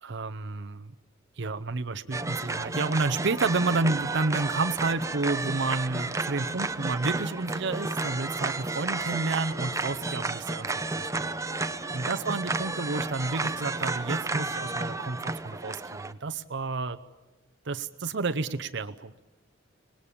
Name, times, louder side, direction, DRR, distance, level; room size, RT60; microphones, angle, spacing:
voice 1, 0.0-0.9 1.4-11.1 11.9-17.0 17.6-19.1, right 3 dB, 65° right, 9 dB, 0.8 m, -30 dB
sound 1, 2.1-16.1, right 3 dB, 15° right, 0.8 m, -32 dB
sound 2, 6.5-14.6, equal, 85° left, 5.3 m, -53 dB
24.5 x 20.0 x 8.6 m, 1.2 s
head